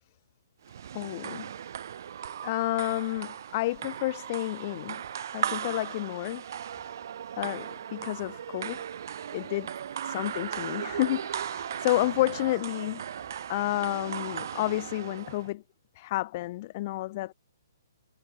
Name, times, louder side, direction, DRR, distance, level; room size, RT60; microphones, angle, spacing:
sound 1, 0.6-15.5, right 9 dB, 60° right, 1.9 m, -37 dB
voice 1, 0.9-1.5 2.4-5.0 5.3-6.4 7.4-8.8 9.3-9.7 10.0-13.0 13.5-15.6 16.0-17.3, left 17 dB, 35° left, 0.5 m, -30 dB
hypercardioid pair, 160°, 2 cm